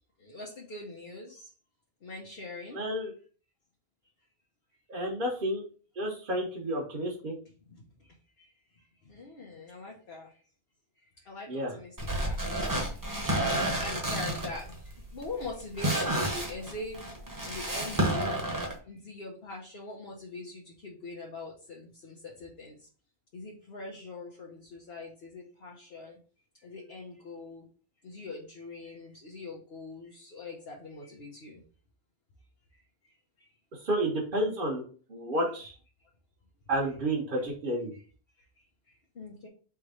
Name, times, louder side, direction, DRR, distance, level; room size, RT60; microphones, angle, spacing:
voice 1, 0.2-1.5 2.0-3.1 7.7-8.1 8.4-8.5 9.0-10.3 11.2-12.9 13.7-17.1 17.4-18.5 18.9-22.8 23.3-26.2 26.6-27.7 28.0-31.6 33.4-33.5 37.9-38.0 39.1-39.5, left 3 dB, 65° left, -2 dB, 1.2 m, -43 dB
voice 2, 2.7-3.1 4.9-5.6 6.0-7.3 11.5-11.7 33.8-34.8 35.1-35.7 36.7-37.9, right 1 dB, 55° right, -3 dB, 1.2 m, -30 dB
sound 1, 12.0-18.7, right 1 dB, 20° right, 1.0 m, -31 dB
3.5 x 3.1 x 4.8 m, 0.40 s
omnidirectional pair, 1.0 m